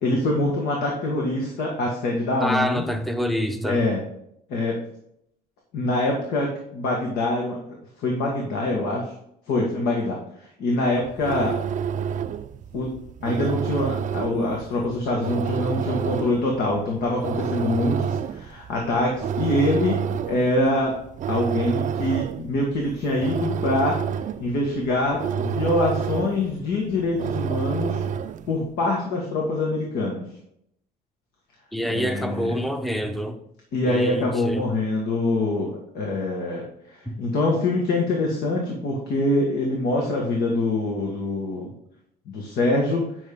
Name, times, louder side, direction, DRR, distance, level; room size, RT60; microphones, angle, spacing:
voice 1, 0.0-2.8 3.6-4.0 4.5-4.8 5.7-7.6 8.0-9.1 9.5-11.6 12.7-12.9 13.2-20.0 20.3-21.0 21.3-28.0 28.5-30.2 31.9-32.6 33.7-41.7 42.3-43.0, left 2 dB, 75° left, 1.7 m, -24 dB
voice 2, 2.4-3.9 31.7-33.4 33.8-34.7 37.1-37.2, equal, ahead, 0.7 m, -26 dB
sound 1, 11.0-28.6, right 7 dB, 50° right, 0.5 m, -29 dB
9.3 x 5.5 x 3.6 m
cardioid pair, 110°, 17 cm